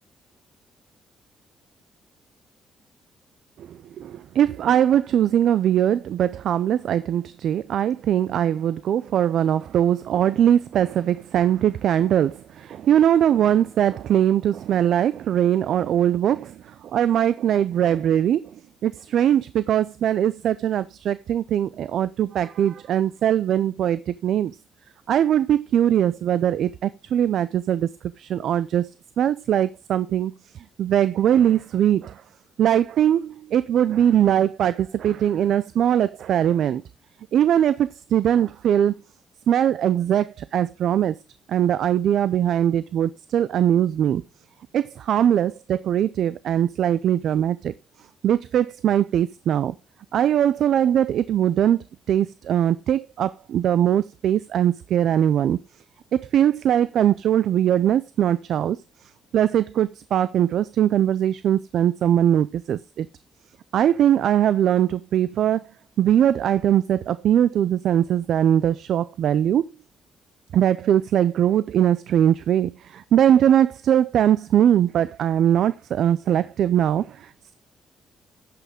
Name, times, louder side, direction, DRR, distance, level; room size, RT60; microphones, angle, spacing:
voice 1, 3.6-18.4 18.8-24.6 25.1-27.9 28.2-28.9 29.2-30.3 30.8-32.2 32.6-36.8 37.3-39.0 39.5-41.1 41.5-44.2 44.7-47.7 48.2-49.7 50.1-51.8 52.1-55.6 56.1-58.8 59.3-63.1 63.7-65.6 66.0-69.7 70.5-77.5, right 10 dB, 70° right, 0.4 m, -21 dB
15.5 x 5.7 x 3.6 m
cardioid pair, 110°, 0 cm